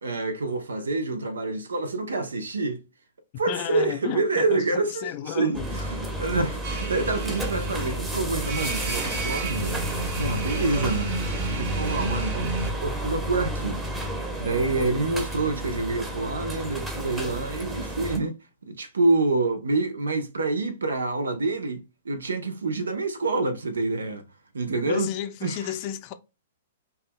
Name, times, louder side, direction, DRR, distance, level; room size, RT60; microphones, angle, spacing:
voice 1, 0.0-2.8 3.4-9.8 10.2-11.2 11.5-12.5 12.8-13.8 14.4-18.4 18.6-24.2 24.5-25.1 25.4-25.7, right 3 dB, 80° right, 0.8 m, -27 dB
voice 2, 3.5-5.8 24.7-26.1, left 11 dB, 40° left, 0.5 m, -33 dB
sound 1, 5.5-18.2, right 1 dB, 15° right, 1.0 m, -32 dB
sound 2, 6.6-12.7, right 3 dB, 50° right, 1.1 m, -32 dB
5.5 x 2.4 x 2.2 m
hypercardioid pair, 115°, 0 cm